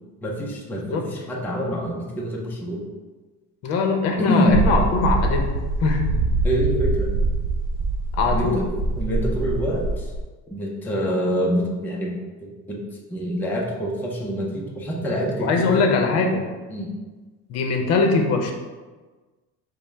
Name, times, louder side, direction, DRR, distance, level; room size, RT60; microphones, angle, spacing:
voice 1, 0.2-2.9 4.2-4.6 6.4-7.1 8.3-10.1 10.5-12.8 13.1-15.9 16.7-16.9, equal, 5° left, -2 dB, 0.4 m, -26 dB
voice 2, 0.7-1.0 3.6-5.5 5.8-6.0 8.1-8.6 15.4-16.4 17.5-18.5, left 4 dB, 55° left, 3 dB, 0.6 m, -21 dB
sound 1, 4.5-10.2, right 2 dB, 85° right, 0.6 m, -24 dB
5.3 x 2.1 x 4.4 m, 1.3 s
cardioid pair, 180°, 30 cm